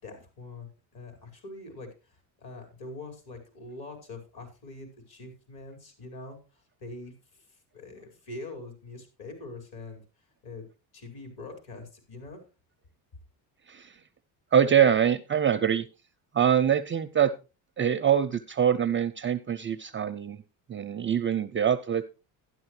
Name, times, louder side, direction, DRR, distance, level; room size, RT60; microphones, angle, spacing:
voice 1, 0.0-6.4 6.8-7.4 7.7-10.0 10.4-10.6 10.9-12.4, left 2 dB, 50° left, 5 dB, 5.2 m, -43 dB
voice 2, 14.5-15.9 16.3-17.3 17.8-20.4 20.7-22.1, right 9 dB, 25° right, 10 dB, 0.4 m, -24 dB
12.0 x 11.0 x 3.2 m, 0.30 s
cardioid pair, 115°, 46 cm